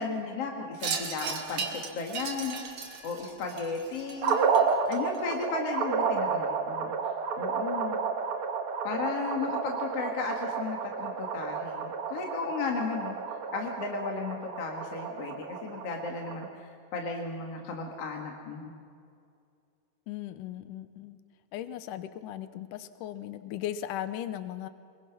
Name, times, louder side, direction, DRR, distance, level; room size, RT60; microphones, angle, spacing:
voice 1, 0.0-2.6 3.0-4.4 4.9-8.0 8.8-13.2 13.5-18.7, left 4 dB, 50° left, 1 dB, 2.1 m, -35 dB
Wind chime, 0.8-5.4, right 5 dB, 50° right, 2.7 m, -37 dB
sound 1, 4.2-16.5, right 5 dB, 70° right, 1.3 m, -31 dB
voice 2, 20.1-21.2 21.5-24.7, left 11 dB, 80° left, 12 dB, 1.9 m, -37 dB
24.0 x 22.0 x 5.9 m, 2.4 s
omnidirectional pair, 4.6 m